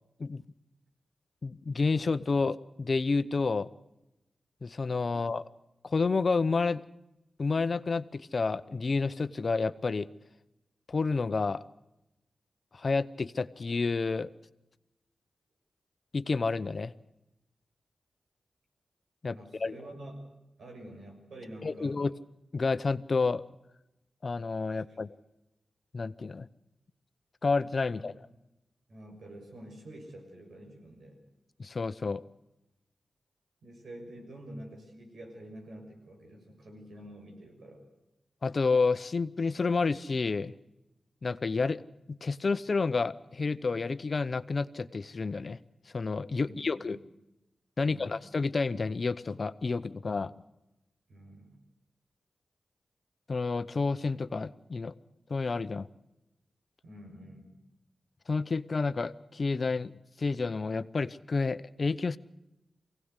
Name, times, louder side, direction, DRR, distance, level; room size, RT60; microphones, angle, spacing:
voice 1, 1.4-3.7 4.6-5.4 5.8-6.8 7.4-10.1 10.9-11.6 12.7-14.3 16.1-16.9 19.2-19.7 21.6-22.1 22.5-23.4 24.2-25.1 25.9-26.5 27.4-28.1 31.6-32.2 38.4-40.5 41.2-41.8 42.1-45.6 45.9-47.0 47.8-50.3 53.3-54.9 55.3-55.9 58.3-59.9 60.2-62.2, left 4 dB, 55° left, 15 dB, 0.8 m, -30 dB
voice 2, 19.3-20.2 20.6-22.0 24.7-25.0 27.9-28.0 28.9-31.2 33.6-37.9 46.4-47.0 47.8-48.2 51.1-51.6 56.8-57.5, right 1 dB, 80° right, 1 dB, 6.6 m, -48 dB
23.5 x 17.5 x 8.2 m, 0.92 s
cardioid pair, 50°, 0 cm